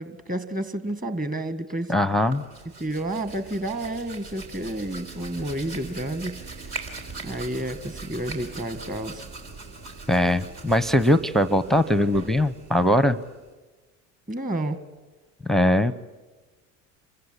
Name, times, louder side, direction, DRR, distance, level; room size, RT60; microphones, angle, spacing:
voice 1, 0.0-1.9 2.8-6.4 6.6-6.8 7.2-9.3 14.3-14.8, right 1 dB, 20° right, 11 dB, 1.8 m, -30 dB
voice 2, 1.9-2.4 10.1-13.2 15.4-15.9, left 1 dB, ahead, 14 dB, 0.7 m, -21 dB
Hands, 2.1-13.5, right 3 dB, 65° right, 3.9 m, -41 dB
26.0 x 15.5 x 9.8 m, 1.3 s
hypercardioid pair, 80°, 38 cm